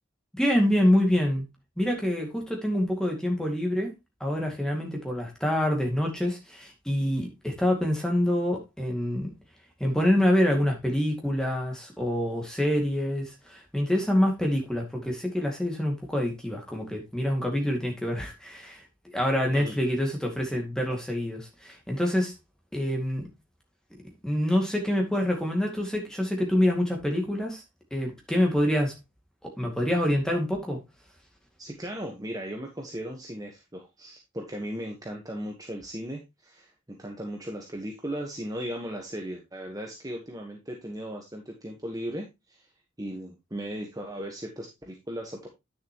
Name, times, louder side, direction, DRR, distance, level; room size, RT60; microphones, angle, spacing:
voice 1, 0.3-1.5 1.8-3.9 4.2-9.3 9.8-18.8 19.1-22.3 22.7-23.3 24.2-27.6 27.9-28.9 29.4-30.8, left 1 dB, 5° left, 2.2 m, -26 dB
voice 2, 31.6-42.7 43.0-45.5, equal, 20° right, 1.3 m, -37 dB
9.8 x 6.8 x 3.0 m
head